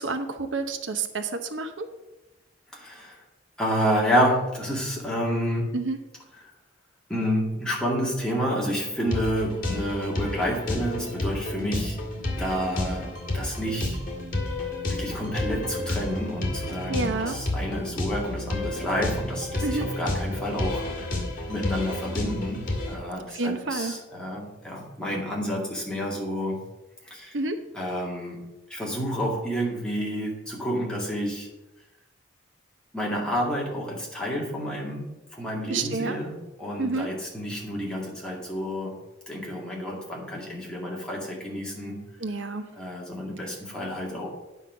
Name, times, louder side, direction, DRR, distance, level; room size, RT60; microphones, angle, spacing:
voice 1, 0.0-1.9 5.7-6.0 16.9-17.3 19.6-19.9 23.3-23.9 27.3-27.6 35.7-36.2 36.8-37.1 42.2-42.6, right 3 dB, 80° right, 8 dB, 0.9 m, -29 dB
voice 2, 2.7-3.2 3.6-5.7 6.4-6.5 7.1-12.0 12.4-14.0 14.9-21.2 21.5-26.6 27.0-27.4 27.7-28.4 28.7-31.5 32.9-39.0 39.3-42.0 42.8-44.3, equal, 5° left, -4 dB, 2.2 m, -29 dB
sound 1, 9.1-23.0, left 1 dB, 45° left, 2.1 m, -31 dB
9.3 x 5.7 x 7.0 m, 1.0 s
head